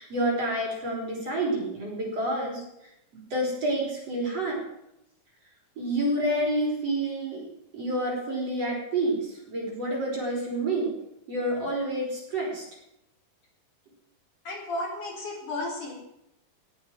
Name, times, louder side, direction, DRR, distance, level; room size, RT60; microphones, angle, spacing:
voice 1, 0.0-2.6 3.3-4.6 5.8-7.5 7.7-10.9 11.3-12.6, right 1 dB, 45° right, -2 dB, 6.2 m, -28 dB
voice 2, 14.5-15.9, left 2 dB, 60° left, -2 dB, 5.9 m, -33 dB
18.5 x 8.6 x 7.7 m, 0.82 s
omnidirectional pair, 4.1 m